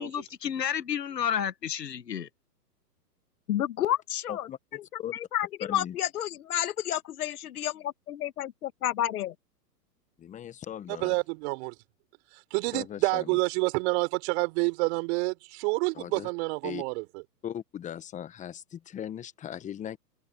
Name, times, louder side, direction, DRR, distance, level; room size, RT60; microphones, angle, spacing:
voice 1, 0.0-2.3, left 8 dB, 80° left, 2.0 m, -31 dB
voice 2, 3.5-9.3, left 12 dB, 60° left, 1.8 m, -31 dB
voice 3, 4.3-5.1 5.7-5.9 10.2-11.2 12.7-13.4 16.0-16.3 16.6-16.8 17.4-20.0, left 10 dB, 15° left, 1.2 m, -39 dB
voice 4, 10.9-11.7 12.5-17.2, right 29 dB, 40° right, 4.4 m, -28 dB
hypercardioid pair, 125°, 49 cm